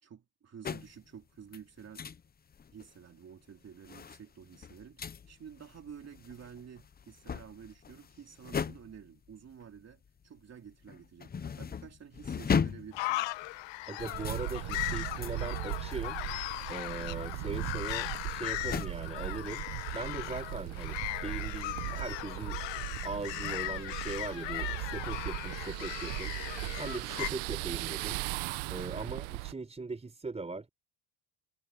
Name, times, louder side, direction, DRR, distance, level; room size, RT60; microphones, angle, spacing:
voice 1, 0.0-2.1 2.7-13.3, right 8 dB, 35° right, 3.2 m, -51 dB
sound 1, 0.6-1.1 1.5-2.3 2.5-3.0 3.5-10.4 10.7-18.9, left 6 dB, 20° left, 0.8 m, -38 dB
sound 2, 12.9-27.3, left 18 dB, 65° left, 1.2 m, -38 dB
voice 2, 13.9-16.2 16.7-19.6 19.9-22.6 23.0-26.3 26.8-28.2 28.7-30.7, right 3 dB, 15° right, 4.4 m, -40 dB
sound 3, 14.0-29.5, right 21 dB, 85° right, 1.1 m, -38 dB
cardioid pair, 135°, 46 cm